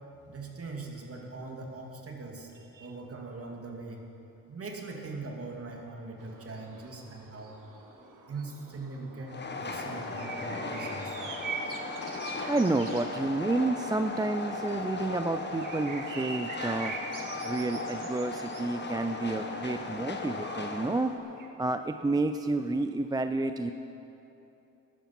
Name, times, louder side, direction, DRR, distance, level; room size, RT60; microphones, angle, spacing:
voice 1, 0.3-2.5 2.8-4.0 4.5-7.6 8.3-11.2, right 3 dB, 40° right, 1 dB, 2.4 m, -41 dB
sound 1, 6.2-21.5, right 4 dB, 65° right, 1.7 m, -45 dB
Train, 9.3-21.2, left 3 dB, 30° left, 1.4 m, -37 dB
Wind instrument woodwind instrument, 10.0-14.7, left 1 dB, 10° left, 3.2 m, -49 dB
voice 2, 12.5-16.9 17.4-21.1 21.6-23.7, right 2 dB, 10° right, 8 dB, 0.4 m, -30 dB
15.5 x 11.0 x 5.9 m, 2.9 s
cardioid pair, 80°, 34 cm